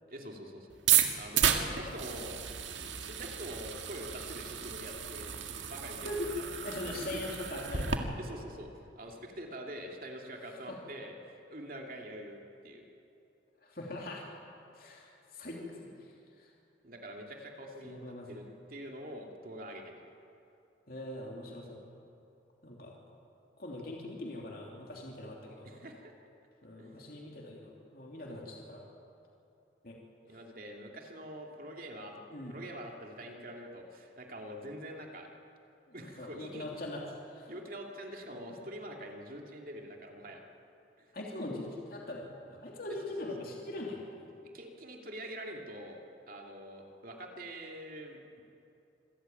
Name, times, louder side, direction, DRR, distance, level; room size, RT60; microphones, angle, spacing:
voice 1, 0.1-0.7 1.1-2.4 3.0-6.4 8.2-8.7 9.0-12.9 16.8-19.9 25.6-26.1 26.8-26.9 30.3-32.2 32.5-35.3 35.9-36.7 37.5-40.4 41.0-41.1 44.5-48.4, equal, 50° right, 1 dB, 2.7 m, -45 dB
sound 1, 0.7-8.0, right 9 dB, 85° right, 1.9 m, -32 dB
voice 2, 6.6-8.2 10.7-10.8 13.6-14.2 14.7-16.1 16.4-16.5 17.8-18.4 20.9-21.8 22.6-22.9 23.6-25.7 26.6-28.8 29.8-30.0 32.3-32.6 35.9-37.5 41.1-44.2, left 1 dB, 50° left, -2 dB, 3.0 m, -42 dB
26.5 x 15.0 x 9.2 m, 2.7 s
head